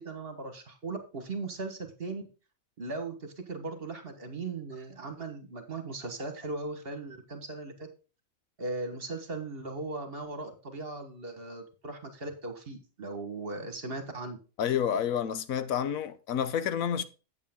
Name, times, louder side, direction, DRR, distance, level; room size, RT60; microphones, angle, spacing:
voice 1, 0.0-2.2 2.8-7.9 8.6-14.4, right 3 dB, 45° right, 1.6 m, -38 dB
voice 2, 14.6-17.0, left 8 dB, 80° left, 1.2 m, -29 dB
8.4 x 8.3 x 3.6 m
omnidirectional pair, 1.4 m